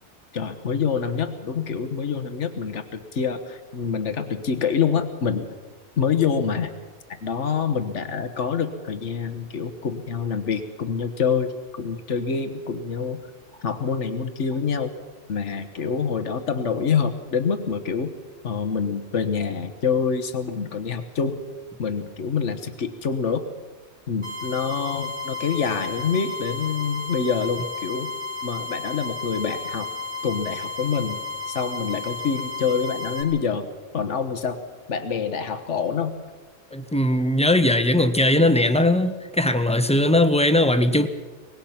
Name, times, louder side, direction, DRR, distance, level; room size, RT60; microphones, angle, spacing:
voice 1, 0.3-5.5 6.0-6.7 7.1-13.2 13.6-14.9 15.3-18.1 18.4-21.4 21.8-23.5 24.1-28.1 28.4-29.9 30.2-33.7 33.9-34.6 34.9-36.2, left 6 dB, 85° left, 1.5 m, -26 dB
sound 1, 24.2-33.2, left 4 dB, 75° right, 4.8 m, -33 dB
voice 2, 36.7-41.1, left 1 dB, 5° left, 0.9 m, -19 dB
24.0 x 20.0 x 5.9 m
omnidirectional pair, 1.2 m